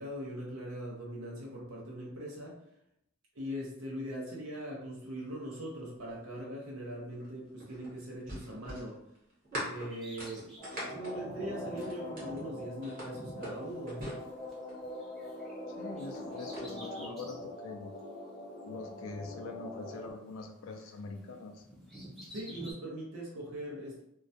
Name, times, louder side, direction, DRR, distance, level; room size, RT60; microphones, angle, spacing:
voice 1, 0.0-2.5 3.3-9.0 9.7-10.5 10.8-14.1 22.3-24.0, equal, 90° right, -4 dB, 0.6 m, -41 dB
sound 1, 7.1-12.4 12.8-14.9 15.9-16.7, equal, 45° right, 1.0 m, -43 dB
Bird vocalization bird call bird song, 9.9-14.5 14.8-17.5 18.0-18.1 19.0-20.4 20.7-22.7, equal, ahead, 0.4 m, -51 dB
sound 2, 10.6-20.1, left 1 dB, 40° left, 0.6 m, -43 dB
voice 2, 15.8-17.9 18.6-21.7, left 3 dB, 75° left, 4 dB, 0.3 m, -44 dB
2.2 x 2.1 x 2.6 m, 0.77 s
head